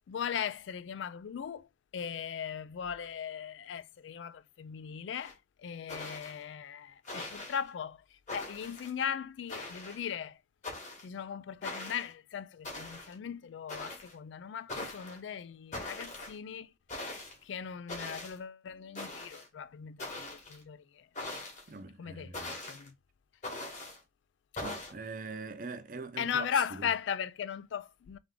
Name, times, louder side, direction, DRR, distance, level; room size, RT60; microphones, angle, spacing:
voice 1, 0.1-1.7 1.9-8.0 8.3-10.4 11.0-16.7 17.4-21.1 22.0-22.4 22.7-22.9 26.2-28.2, left 8 dB, 75° left, 0.3 m, -38 dB
sound 1, 5.2-5.3 5.9-6.4 7.0-7.6 8.3-8.9 9.5-10.1 10.6-11.0 11.6-12.1 12.6-13.1 13.7-14.1 14.7-15.2 15.7-16.3 16.9-17.3 17.9-18.4 18.9-19.5 20.0-20.6 21.1-21.7 22.3-22.9 23.4-24.0 24.6-24.9, left 2 dB, 40° left, 1.7 m, -41 dB
voice 2, 21.7-22.6 24.6-26.9, right 3 dB, 45° right, 0.6 m, -42 dB
3.5 x 3.4 x 3.6 m
head